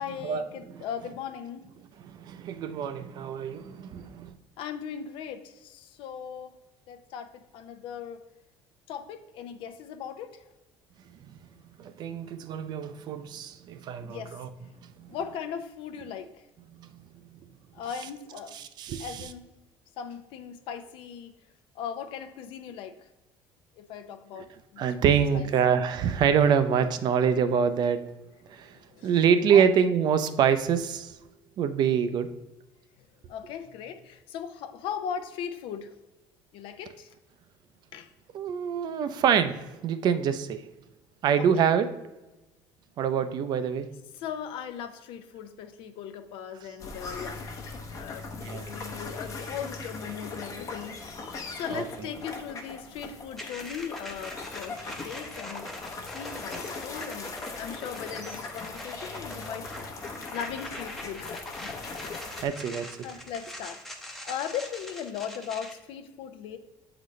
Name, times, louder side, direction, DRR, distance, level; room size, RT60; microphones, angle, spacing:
voice 1, 0.0-1.7 4.6-6.5 6.9-8.2 8.9-10.4 14.0-14.4 15.1-16.4 17.7-18.6 19.0-19.5 20.0-21.3 21.7-23.1 23.8-25.1 25.3-25.5 28.7-29.1 29.5-29.7 33.3-35.9 36.5-37.1 37.9-38.1 41.4-41.5 44.1-47.4 47.9-51.0 51.5-55.7 56.1-59.8 60.3-61.7 62.2-62.5 63.0-63.8 64.2-66.6, left 8 dB, 65° left, 9 dB, 0.6 m, -38 dB
voice 2, 2.0-4.3 11.8-14.5 18.5-19.3 24.8-28.0 28.5-28.7 29.0-31.1 31.6-32.3 38.3-39.6 39.8-40.6 41.2-41.9 43.0-43.9 48.4-48.6 51.7-51.8 62.4-62.9, right 7 dB, 50° right, 10 dB, 0.5 m, -25 dB
sound 1, 46.8-62.4, left 3 dB, 35° left, 0.8 m, -40 dB
sound 2, 53.4-65.7, left 1 dB, 5° left, 0.7 m, -43 dB
7.8 x 4.0 x 3.1 m, 1.0 s
cardioid pair, 145°, 10 cm